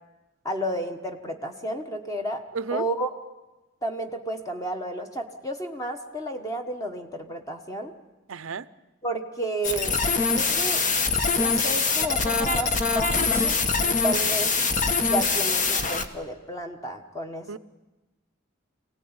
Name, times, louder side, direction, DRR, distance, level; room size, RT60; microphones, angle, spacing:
voice 1, 0.4-2.4 2.7-3.1 3.8-7.9 9.0-10.0 10.3-10.8 11.4-13.6 13.8-14.5 15.0-17.6, right 1 dB, 15° left, 4 dB, 1.3 m, -32 dB
voice 2, 8.3-8.7 17.5-17.6, right 5 dB, 85° right, 16 dB, 0.7 m, -32 dB
sound 1, 9.6-16.1, left 4 dB, 40° left, 1.2 m, -23 dB
24.5 x 17.5 x 8.9 m, 1.1 s
head